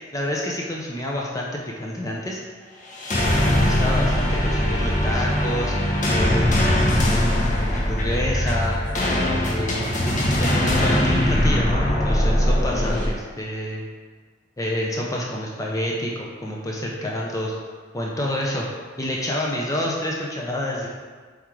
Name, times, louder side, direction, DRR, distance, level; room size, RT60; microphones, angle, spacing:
voice 1, 0.1-2.4 3.4-5.7 6.1-7.2 7.6-8.8 9.4-10.0 10.4-13.8 14.6-17.6 17.9-18.7 19.0-20.9, left 1 dB, 20° left, -3 dB, 0.7 m, -28 dB
sound 1, 2.9-13.1, left 1 dB, 40° left, 1.2 m, -21 dB
7.5 x 3.6 x 4.7 m, 1.5 s
head